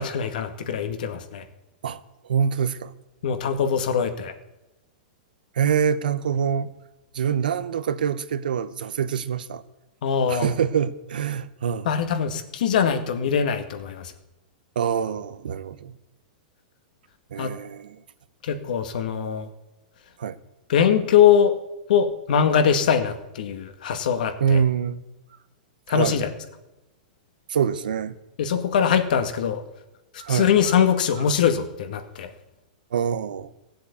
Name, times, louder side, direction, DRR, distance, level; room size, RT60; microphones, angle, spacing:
voice 1, 0.0-1.4 3.2-4.3 10.0-10.5 11.8-14.1 17.4-17.5 18.4-19.5 20.7-21.5 21.9-24.6 25.9-26.3 28.4-29.6 30.3-32.3, left 8 dB, 70° left, 1.9 m, -22 dB
voice 2, 1.8-2.9 5.5-6.7 7.1-9.6 10.3-11.9 14.8-16.0 17.3-18.0 20.2-20.4 24.4-25.0 25.9-26.2 27.5-28.1 30.2-30.5 32.9-33.5, right 7 dB, 85° right, 0.9 m, -25 dB
16.0 x 7.6 x 8.4 m
hypercardioid pair, 150°, 5 cm